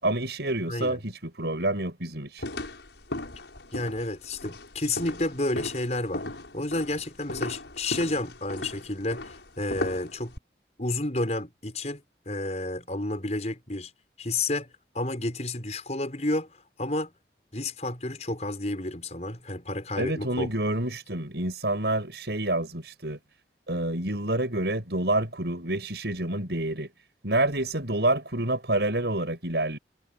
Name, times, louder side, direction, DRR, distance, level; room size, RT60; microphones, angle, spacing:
voice 1, 0.0-2.4 20.0-23.2 23.7-26.9 27.2-29.8, right 1 dB, 70° right, 6.0 m, -28 dB
voice 2, 0.7-1.0 3.7-6.3 6.5-10.3 10.8-12.0 12.3-13.9 14.2-14.7 14.9-16.5 16.8-17.1 17.5-20.5, left 2 dB, 40° left, 6.0 m, -30 dB
sound 1, 2.4-10.4, left 1 dB, 90° left, 6.9 m, -37 dB
head